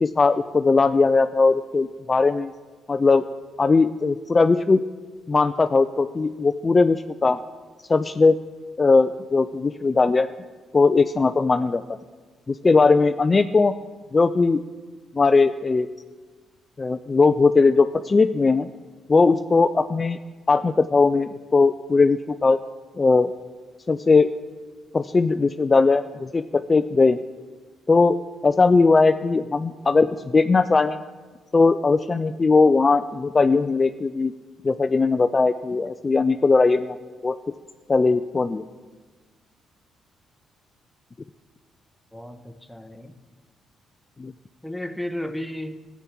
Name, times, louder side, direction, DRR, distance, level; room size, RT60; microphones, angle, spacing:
voice 1, 0.0-2.5 2.9-3.2 3.6-4.8 5.3-7.4 7.9-8.4 8.8-10.3 10.7-11.8 12.5-13.7 14.1-14.6 15.1-15.9 16.8-18.7 19.1-20.2 20.5-22.6 23.0-23.3 23.9-24.3 24.9-27.2 27.9-28.2 28.4-31.0 31.5-34.3 34.6-37.0 37.2-37.4 37.9-38.6 44.2-44.3, left 4 dB, 30° left, 10 dB, 0.4 m, -19 dB
voice 2, 42.1-43.1 44.6-45.9, left 1 dB, ahead, 7 dB, 1.0 m, -33 dB
13.5 x 8.4 x 5.9 m, 1.4 s
cardioid pair, 90°, 0 cm